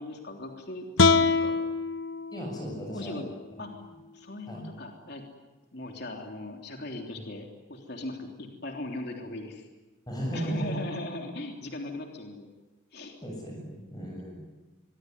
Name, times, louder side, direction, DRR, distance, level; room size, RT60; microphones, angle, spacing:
voice 1, 0.0-1.6 2.9-3.3 3.6-3.7 4.1-5.2 5.7-9.7 10.3-12.5 12.9-13.1, left 2 dB, 55° left, 2 dB, 3.4 m, -39 dB
sound 1, 1.0-4.1, left 4 dB, 80° left, 1.1 m, -26 dB
voice 2, 2.3-3.3 4.5-4.7 10.1-10.8 13.2-14.4, right 1 dB, 20° left, 0 dB, 7.3 m, -35 dB
24.0 x 24.0 x 9.6 m, 1.1 s
head